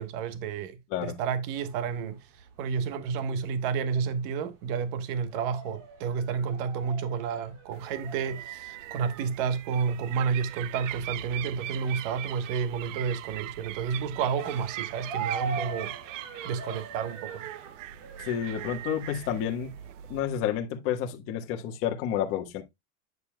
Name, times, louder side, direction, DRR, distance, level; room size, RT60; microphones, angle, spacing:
voice 1, 0.0-2.2 2.6-15.9 16.4-17.4, right 6 dB, 45° right, 1.2 m, -30 dB
sound 1, 1.5-20.6, right 5 dB, 75° right, 4.2 m, -43 dB
sound 2, 7.7-20.2, right 14 dB, 90° right, 0.7 m, -41 dB
voice 2, 18.2-19.7 20.1-22.6, left 9 dB, 35° left, 1.4 m, -30 dB
9.5 x 6.9 x 2.2 m
supercardioid pair, 175°, 37 cm